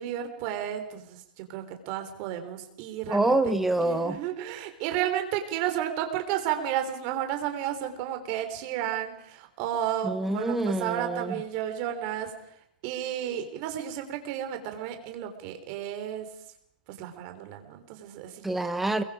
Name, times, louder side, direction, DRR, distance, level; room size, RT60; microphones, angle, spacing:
voice 1, 0.0-3.4 3.8-12.3 12.8-16.3 17.0-18.4, right 10 dB, 40° right, 6 dB, 3.5 m, -32 dB
voice 2, 3.1-4.2 10.0-11.3 18.4-19.0, right 2 dB, 5° right, 8 dB, 1.2 m, -26 dB
29.0 x 22.0 x 4.9 m, 0.74 s
supercardioid pair, 160°, 5 cm